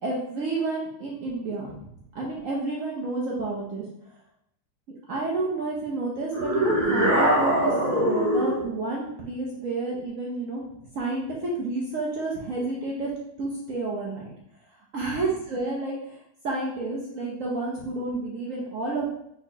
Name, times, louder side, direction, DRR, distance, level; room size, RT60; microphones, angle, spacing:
voice 1, 0.0-1.8 2.1-3.8 5.1-10.6 10.9-13.1 13.4-14.2 14.9-16.2 16.4-19.1, right 3 dB, 60° right, -3 dB, 0.9 m, -30 dB
sound 1, 6.3-8.6, right 1 dB, 30° right, 1.6 m, -22 dB
4.2 x 4.0 x 2.7 m, 0.75 s
omnidirectional pair, 2.0 m